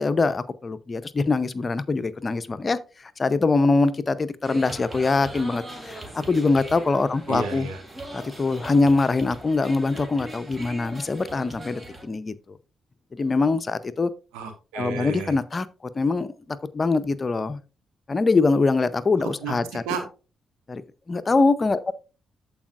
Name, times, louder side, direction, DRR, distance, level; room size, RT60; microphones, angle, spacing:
voice 1, 0.0-7.7 8.1-12.6 13.1-14.1 14.7-15.7 15.9-17.6 18.1-19.8 20.7-20.8 21.1-21.9, left 3 dB, 35° left, 0.6 m, -23 dB
sound 1, 4.4-12.0, right 1 dB, 25° right, 2.6 m, -40 dB
voice 2, 7.3-7.8 14.3-15.4 19.4-19.5 19.8-20.0, right 5 dB, 75° right, 1.7 m, -31 dB
14.0 x 4.8 x 2.5 m
hypercardioid pair, 40°, 0 cm